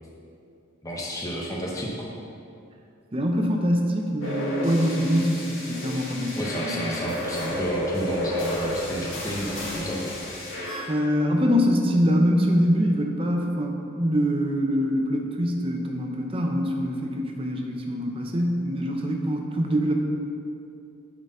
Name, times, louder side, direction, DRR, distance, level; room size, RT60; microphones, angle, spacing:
voice 1, 0.8-2.1 6.4-10.1, equal, 15° left, -3 dB, 0.8 m, -31 dB
voice 2, 3.1-6.8 10.9-19.9, equal, 25° right, 2 dB, 0.7 m, -24 dB
sound 1, 4.2-10.8, equal, 70° left, 1.6 m, -32 dB
9.1 x 3.9 x 5.5 m, 2.6 s
head